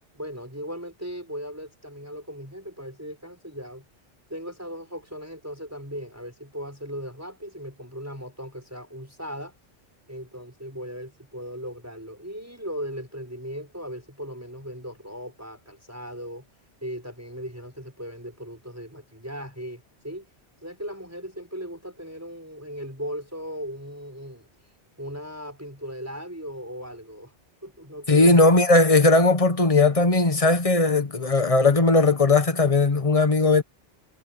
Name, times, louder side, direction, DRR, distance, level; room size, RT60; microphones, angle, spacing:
voice 1, 0.1-3.9 4.3-9.5 10.1-16.5 16.8-20.3 20.6-24.5 25.0-27.3 27.6-28.3, equal, 10° right, 6.3 m, -37 dB
voice 2, 28.1-33.6, left 3 dB, 30° left, 1.3 m, -18 dB
omnidirectional pair, 1.3 m